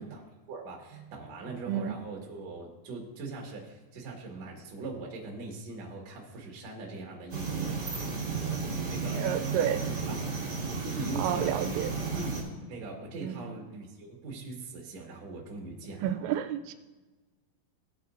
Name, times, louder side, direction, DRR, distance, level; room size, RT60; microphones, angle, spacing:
voice 1, 0.0-8.0 8.3-8.6 8.9-9.3 9.6-9.7 10.1-10.2 10.8-11.7 12.1-12.4 12.7-16.3, right 3 dB, 50° right, 0 dB, 2.2 m, -41 dB
sound 1, 7.3-12.4, right 4 dB, 30° right, 2.0 m, -33 dB
voice 2, 9.1-9.8 11.2-11.9 13.2-13.6 16.0-16.7, right 10 dB, 85° right, 9 dB, 2.8 m, -30 dB
17.0 x 8.3 x 2.5 m, 1.2 s
omnidirectional pair, 5.1 m